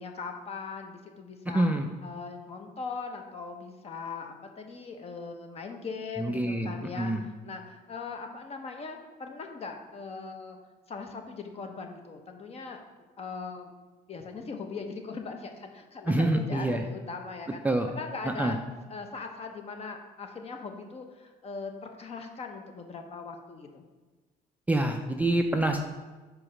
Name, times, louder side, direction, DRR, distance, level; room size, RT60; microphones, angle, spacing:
voice 1, 0.0-1.7 2.0-10.6 10.9-12.8 13.2-13.7 14.1-18.6 18.9-23.9, left 4 dB, 35° left, 4 dB, 0.8 m, -40 dB
voice 2, 1.5-1.8 6.2-7.2 16.1-16.8 17.6-17.9 18.4-18.6 24.7-25.8, right 1 dB, 10° right, 4 dB, 0.3 m, -26 dB
4.9 x 4.2 x 4.9 m, 1.3 s
cardioid pair, 110°, 17 cm